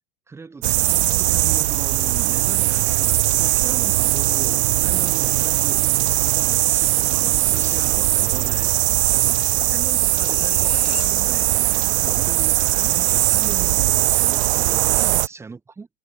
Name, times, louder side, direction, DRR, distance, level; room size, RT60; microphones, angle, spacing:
voice 1, 0.3-5.8 6.1-8.8 9.2-15.9, right 4 dB, 5° right, 5.1 m, -39 dB
sound 1, 0.6-15.3, right 16 dB, 70° right, 0.6 m, -20 dB
sound 2, 8.8-11.7 12.1-12.2, left 11 dB, 80° left, 4.9 m, -37 dB
supercardioid pair, 170°, 34 cm